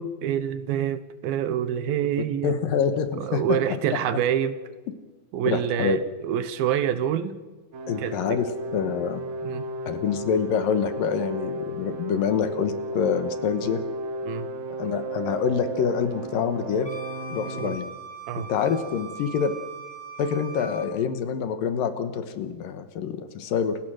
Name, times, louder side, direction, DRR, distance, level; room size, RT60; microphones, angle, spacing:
voice 1, 0.0-2.5 3.2-4.6 5.3-7.4 8.0-8.4 8.8-8.9 9.4-9.7 14.2-14.5 17.5-17.8 18.3-18.5, right 9 dB, 75° right, 13 dB, 2.6 m, -27 dB
voice 2, 2.4-3.6 5.5-6.0 7.9-9.2 9.9-13.8 14.8-16.9 17.3-17.9 18.4-19.5 20.2-23.8, left 7 dB, 65° left, 10 dB, 2.7 m, -26 dB
sound 1, 7.7-17.6, right 1 dB, 55° right, 2.5 m, -34 dB
Wind instrument woodwind instrument, 16.8-20.9, right 3 dB, 15° left, 2.1 m, -40 dB
28.5 x 16.5 x 6.4 m, 1.3 s
omnidirectional pair, 4.6 m